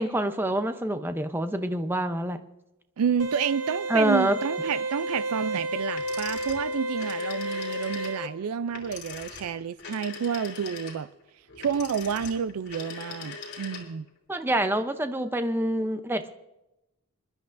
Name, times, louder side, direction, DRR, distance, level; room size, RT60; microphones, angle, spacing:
voice 1, 0.0-2.4 3.9-4.4 14.3-16.3, right 1 dB, 10° right, 0.6 m, -26 dB
voice 2, 3.0-11.1 11.6-14.1, right 7 dB, 80° right, 0.4 m, -29 dB
sound 1, 3.2-8.3, right 1 dB, 60° right, 0.9 m, -31 dB
sound 2, 5.9-14.1, left 5 dB, 50° left, 3.0 m, -41 dB
25.5 x 12.0 x 2.6 m
head